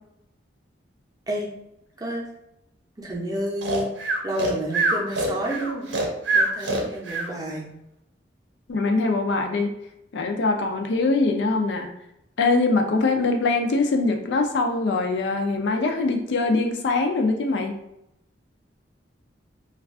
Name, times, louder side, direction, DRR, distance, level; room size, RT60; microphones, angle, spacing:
voice 1, 3.0-3.9 4.2-5.9 6.3-7.7, equal, 20° right, -3 dB, 0.5 m, -30 dB
Breathing, 3.6-7.3, right 2 dB, 85° right, 0.6 m, -24 dB
voice 2, 8.7-9.7 10.1-11.9 12.4-17.7, left 3 dB, 70° left, 4 dB, 0.4 m, -23 dB
2.3 x 2.3 x 3.5 m, 0.82 s
head